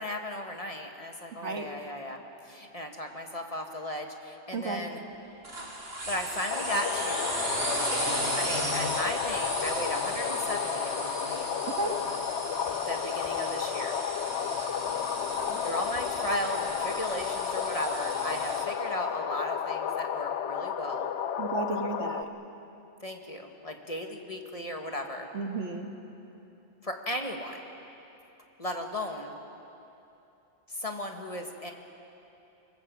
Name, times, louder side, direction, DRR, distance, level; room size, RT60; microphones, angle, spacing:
voice 1, 0.0-2.2 2.4-5.0 6.1-7.4 8.4-11.4 12.7-13.9 15.6-21.1 23.0-25.3 26.8-27.6 28.6-29.4 30.7-31.7, left 1 dB, 30° left, 3 dB, 1.7 m, -35 dB
voice 2, 4.5-4.8 11.7-12.0 15.3-15.6 21.4-22.3 25.3-25.9, right 3 dB, 75° right, 4 dB, 1.9 m, -33 dB
sound 1, 5.4-18.6, right 1 dB, 55° right, 3.0 m, -36 dB
sound 2, 6.5-22.2, left 8 dB, 70° left, 1.0 m, -32 dB
25.5 x 20.0 x 7.6 m, 2.9 s
omnidirectional pair, 1.2 m